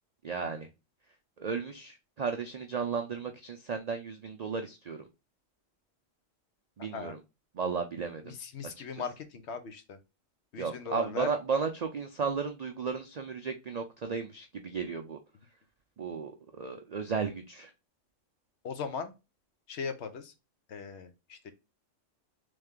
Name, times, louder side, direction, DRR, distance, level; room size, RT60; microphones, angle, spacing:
voice 1, 0.2-0.7 1.4-5.0 6.8-7.2 7.5-8.3 10.6-15.2 16.0-17.7, right 5 dB, 70° right, 5 dB, 0.3 m, -34 dB
voice 2, 8.2-10.0 10.5-11.3 18.6-19.1 19.7-20.3 20.7-21.5, left 5 dB, 65° left, 9 dB, 0.9 m, -38 dB
3.3 x 3.2 x 3.6 m, 0.26 s
omnidirectional pair, 1.4 m